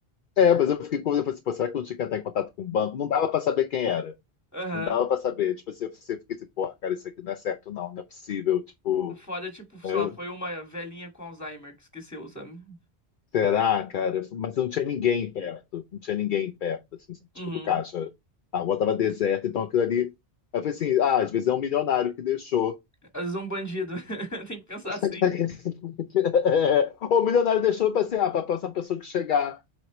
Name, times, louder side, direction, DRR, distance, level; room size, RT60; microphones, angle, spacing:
voice 1, 0.4-4.1 4.7-6.2 6.6-9.1 9.8-10.1 13.3-16.8 17.1-17.2 17.6-18.1 18.5-20.1 20.5-22.8 24.9-29.6, left 8 dB, 60° left, 0.7 m, -25 dB
voice 2, 4.5-5.0 9.1-12.8 17.3-17.8 23.1-25.2, equal, 15° left, 2.1 m, -35 dB
7.8 x 4.3 x 3.1 m
omnidirectional pair, 1.1 m